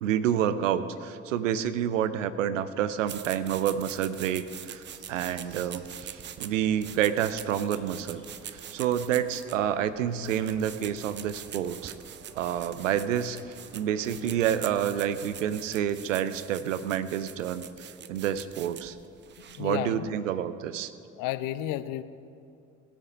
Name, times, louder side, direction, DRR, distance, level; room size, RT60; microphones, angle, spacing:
voice 1, 0.0-8.2 8.5-11.9 12.4-13.4 13.7-19.0 19.6-20.9, right 9 dB, 80° right, 13 dB, 0.6 m, -28 dB
sound 1, 2.9-15.9, right 2 dB, 55° right, 2.1 m, -55 dB
sound 2, 3.0-19.7, right 10 dB, 30° right, 0.5 m, -44 dB
voice 2, 19.4-20.1 21.2-22.0, left 14 dB, 60° left, 14 dB, 0.6 m, -32 dB
18.0 x 8.6 x 5.3 m, 2.6 s
figure-of-eight pair, 50°, 38 cm